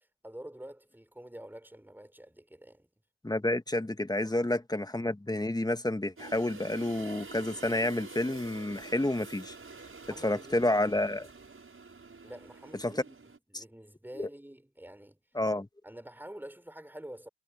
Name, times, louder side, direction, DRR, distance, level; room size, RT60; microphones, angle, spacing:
voice 1, 0.0-2.9 4.2-4.5 10.0-10.8 12.2-13.2 13.5-15.2 15.8-17.3, right 1 dB, 5° right, 4.6 m, -47 dB
voice 2, 3.2-9.6 10.2-11.3 12.8-12.9 13.5-13.6 14.2-14.3 15.4-15.7, left 1 dB, 10° left, 1.9 m, -29 dB
sound 1, 6.2-13.4, right 4 dB, 40° right, 7.6 m, -47 dB
hypercardioid pair, 40°, 34 cm